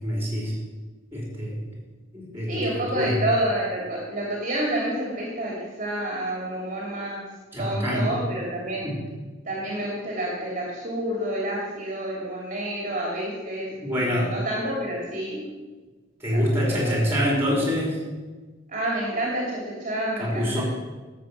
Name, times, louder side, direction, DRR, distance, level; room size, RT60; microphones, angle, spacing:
voice 1, 0.0-0.5 1.1-1.6 2.1-3.2 7.5-8.1 8.8-9.0 13.8-14.3 16.2-18.0 20.2-20.6, equal, 10° right, -3 dB, 4.0 m, -25 dB
voice 2, 2.5-7.2 7.6-8.9 9.5-13.7 14.0-15.4 16.3-17.1 18.7-20.6, right 1 dB, 35° right, -3 dB, 2.7 m, -29 dB
13.0 x 7.5 x 6.4 m, 1.3 s
head